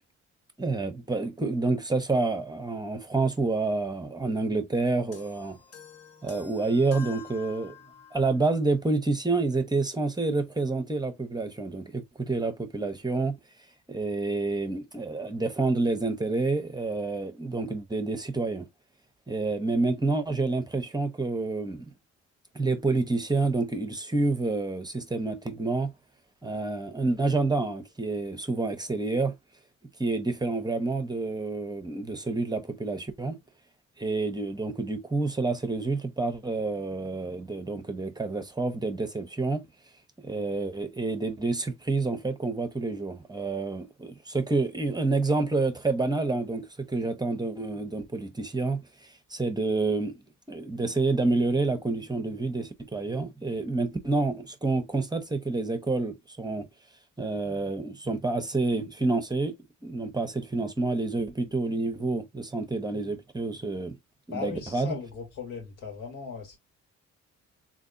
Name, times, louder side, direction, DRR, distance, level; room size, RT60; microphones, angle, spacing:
voice 1, 0.6-5.6 6.2-7.8 8.1-13.4 13.9-18.7 19.3-21.9 22.5-25.9 26.4-29.3 30.0-33.4 34.0-39.7 40.2-50.2 50.5-56.7 57.2-59.5 59.8-64.0 64.3-64.9, right 3 dB, 15° right, 0.8 m, -28 dB
sound 1, 5.1-8.3, left 6 dB, 55° left, 1.1 m, -48 dB
voice 2, 64.3-66.6, left 5 dB, 90° left, 1.7 m, -38 dB
3.4 x 2.7 x 2.6 m
cardioid pair, 90°, 30 cm